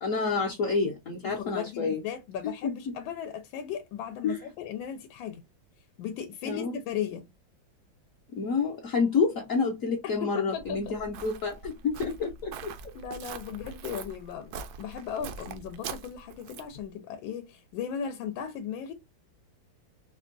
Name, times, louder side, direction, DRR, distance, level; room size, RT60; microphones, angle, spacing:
voice 1, 0.0-2.0 2.4-2.7 4.2-4.4 6.4-6.8 8.4-12.5, left 4 dB, 60° left, 0.9 m, -28 dB
voice 2, 1.2-5.4 6.0-7.3 10.2-10.8 12.2-12.3 12.9-14.5 14.8-18.9, left 8 dB, 85° left, 1.3 m, -36 dB
Walk footsteps, 10.6-16.8, right 6 dB, 70° right, 0.9 m, -43 dB
4.4 x 2.2 x 2.5 m
omnidirectional pair, 2.1 m